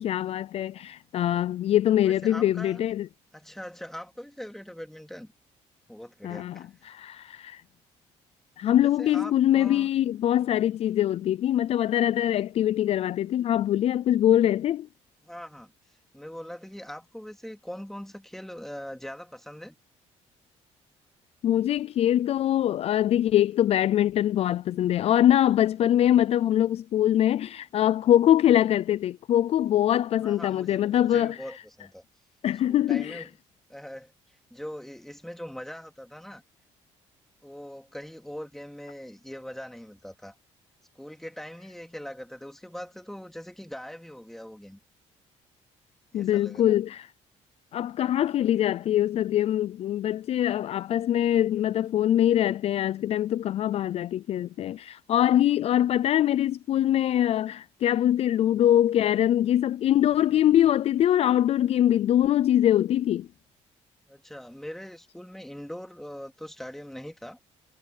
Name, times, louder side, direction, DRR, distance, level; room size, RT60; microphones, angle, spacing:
voice 1, 0.0-3.1 6.2-7.6 8.6-14.9 21.4-31.4 32.4-33.2 46.1-47.1 47.7-63.3, left 11 dB, 55° left, 0.4 m, -23 dB
voice 2, 2.0-2.8 3.3-5.3 5.9-6.7 8.8-9.9 15.2-15.7 16.1-19.8 30.2-32.0 32.7-33.3 33.7-34.1 34.5-36.4 37.4-40.3 40.9-44.8 46.1-46.8 64.1-67.4, equal, 5° left, 3.1 m, -41 dB
cardioid pair, 110°, 12 cm